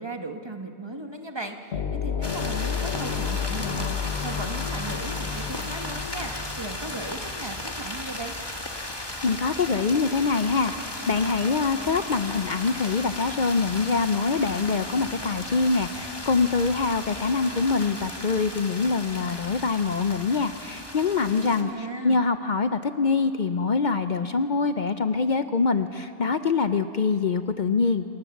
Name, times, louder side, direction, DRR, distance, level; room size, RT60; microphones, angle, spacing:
voice 1, 0.0-4.0 4.2-8.3 21.3-22.2, right 2 dB, 25° right, 4 dB, 1.3 m, -36 dB
sound 1, 1.7-8.2, left 7 dB, 85° left, 1.3 m, -32 dB
sound 2, 2.2-21.6, left 1 dB, 25° left, 1.7 m, -36 dB
voice 2, 9.0-28.1, left 4 dB, 50° left, 10 dB, 0.8 m, -24 dB
26.0 x 18.5 x 7.1 m, 2.5 s
omnidirectional pair, 1.0 m